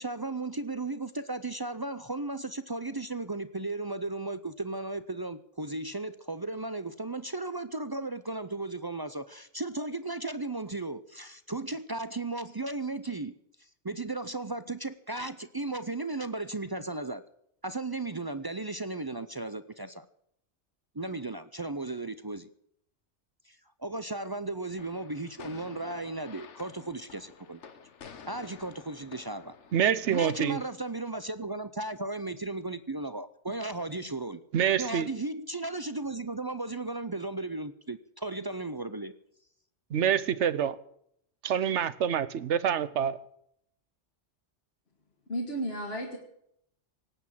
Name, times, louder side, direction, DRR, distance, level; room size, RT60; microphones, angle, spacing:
voice 1, 0.0-13.3 13.6-17.2 17.6-20.1 20.9-22.5 23.5-27.6 28.3-29.6 30.1-34.4 34.8-39.1, right 2 dB, 35° right, 0.4 m, -35 dB
sound 1, 24.8-30.7, left 6 dB, 75° left, 1.4 m, -50 dB
voice 2, 29.7-30.6 34.5-35.1 39.9-40.8 41.4-43.2, right 9 dB, 75° right, 1.1 m, -26 dB
voice 3, 45.3-46.2, right 1 dB, 60° left, 1.9 m, -33 dB
18.5 x 8.5 x 7.5 m
omnidirectional pair, 1.2 m